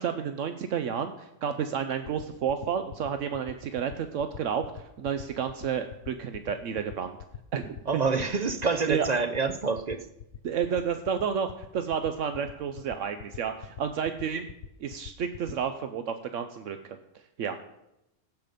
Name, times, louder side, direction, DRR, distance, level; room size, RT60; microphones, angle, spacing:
voice 1, 0.0-7.2 7.5-7.8 8.9-9.1 10.4-14.5 14.8-17.0 17.4-17.6, right 7 dB, 75° right, 1.0 m, -31 dB
sound 1, 2.0-15.5, left 10 dB, 80° left, 1.0 m, -42 dB
voice 2, 7.9-10.1, right 4 dB, 50° right, 0.5 m, -27 dB
15.5 x 5.9 x 5.2 m
omnidirectional pair, 1.3 m